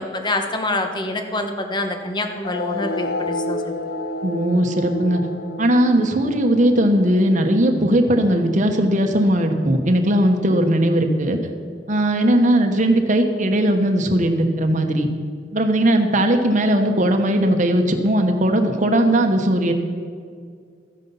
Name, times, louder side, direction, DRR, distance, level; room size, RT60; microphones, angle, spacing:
voice 1, 0.0-3.8, left 2 dB, 25° left, 5 dB, 1.2 m, -26 dB
sound 1, 2.4-9.4, left 1 dB, 60° left, 0.8 m, -31 dB
voice 2, 4.2-5.2 5.6-11.4 11.9-15.1 15.5-19.7, right 1 dB, 45° right, 5 dB, 1.2 m, -18 dB
14.0 x 9.9 x 5.5 m, 2.1 s
head